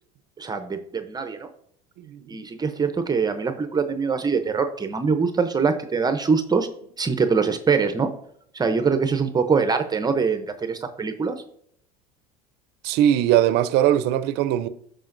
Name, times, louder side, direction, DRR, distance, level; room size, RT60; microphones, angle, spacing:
voice 1, 0.4-1.5 2.3-6.7 7.0-8.1 8.5-11.4, right 5 dB, 20° right, 0.7 m, -23 dB
voice 2, 2.0-2.5 12.8-14.7, right 11 dB, 60° right, 0.6 m, -21 dB
13.0 x 5.0 x 2.6 m
supercardioid pair, 100°, 19 cm